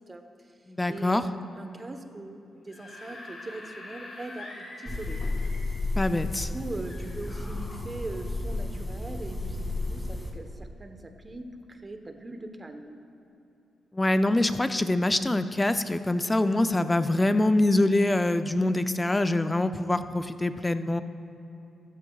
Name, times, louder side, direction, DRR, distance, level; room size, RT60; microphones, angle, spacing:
voice 1, 0.0-5.2 6.5-11.4 11.7-13.0, right 2 dB, 30° right, 6 dB, 1.1 m, -41 dB
voice 2, 0.7-1.2 6.0-6.5 13.9-21.0, left 2 dB, 20° left, 10 dB, 0.6 m, -24 dB
Screaming / Screech, 2.5-5.9 6.9-8.0, left 2 dB, 50° left, 2.7 m, -45 dB
sound 1, 4.9-10.3, left 2 dB, 5° left, 2.3 m, -32 dB
14.5 x 13.5 x 2.4 m, 2.8 s
supercardioid pair, 45°, 0 cm